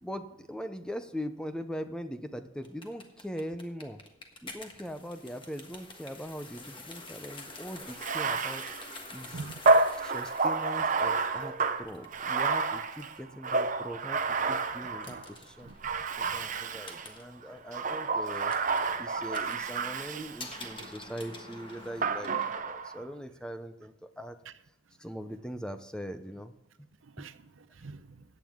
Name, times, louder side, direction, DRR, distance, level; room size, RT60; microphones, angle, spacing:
voice 1, 0.0-4.0 4.4-8.6 9.1-9.3 10.0-15.7 16.2-18.5 19.0-24.4 25.0-26.6 27.2-27.3, equal, 5° left, 9 dB, 0.6 m, -41 dB
sound 1, 2.6-22.6, left 2 dB, 25° left, 1.4 m, -49 dB
Bathtub (filling or washing), 7.9-15.3 15.8-17.1 17.7-20.9 22.0-23.0, right 4 dB, 40° right, 0.7 m, -29 dB
voice 2, 14.8-15.2 15.6-16.4 20.1-20.2 20.8-20.9 24.5-24.6 27.0-28.2, right 4 dB, 75° right, 12 dB, 0.7 m, -46 dB
15.0 x 9.3 x 3.6 m, 0.86 s
head